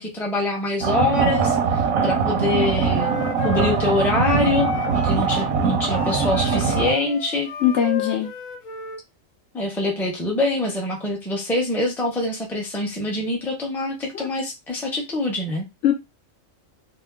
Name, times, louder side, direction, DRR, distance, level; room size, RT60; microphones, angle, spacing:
voice 1, 0.0-1.6 2.0-3.2 3.4-4.7 5.0-7.5 9.5-15.7, left 2 dB, ahead, -1 dB, 0.6 m, -24 dB
sound 1, 0.8-6.9, right 5 dB, 90° right, 1.1 m, -22 dB
Wind instrument woodwind instrument, 2.7-5.5 5.9-9.0, left 6 dB, 85° left, 1.1 m, -33 dB
voice 2, 7.6-8.3 14.1-14.3 15.8-15.9, left 9 dB, 65° left, 3 dB, 0.8 m, -20 dB
2.9 x 2.1 x 3.5 m, 0.23 s
omnidirectional pair, 1.4 m